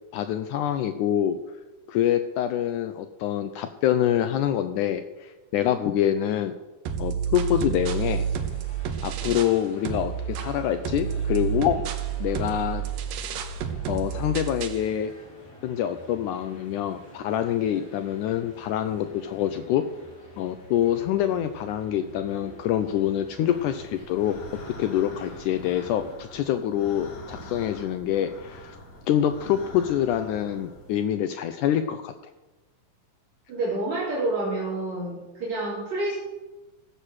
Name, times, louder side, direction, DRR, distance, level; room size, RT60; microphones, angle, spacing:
voice 1, 0.1-1.4 1.9-6.5 7.0-8.3 9.0-11.8 12.2-12.8 13.9-15.1 15.6-19.9 20.4-24.4 24.7-28.8 29.1-32.1, left 10 dB, 75° left, 9 dB, 2.0 m, -26 dB
sound 1, 6.9-9.6 9.9-14.9, right 8 dB, 85° right, 2.6 m, -30 dB
sound 2, 8.2-26.2, right 1 dB, 30° left, 2.9 m, -48 dB
sound 3, 23.5-31.1, left 1 dB, 55° left, 4.0 m, -44 dB
voice 2, 33.5-36.2, right 2 dB, 55° right, -6 dB, 4.4 m, -28 dB
16.5 x 7.8 x 6.4 m, 1.1 s
omnidirectional pair, 3.8 m